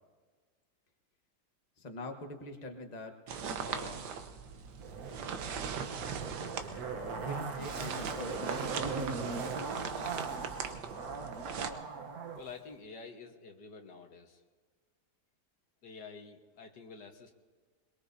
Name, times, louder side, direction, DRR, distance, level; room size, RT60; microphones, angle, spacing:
voice 1, 1.8-4.1 6.9-8.9, left 2 dB, 25° left, 3 dB, 1.3 m, -45 dB
sound 1, 3.3-11.7, right 6 dB, 90° right, 1.6 m, -40 dB
Zipper (clothing), 4.8-12.4 12.7-12.8, right 4 dB, 65° right, 1.6 m, -39 dB
voice 2, 12.4-14.4 15.8-17.3, left 5 dB, 85° left, 4 dB, 2.0 m, -49 dB
22.5 x 22.0 x 2.7 m, 1.5 s
omnidirectional pair, 1.8 m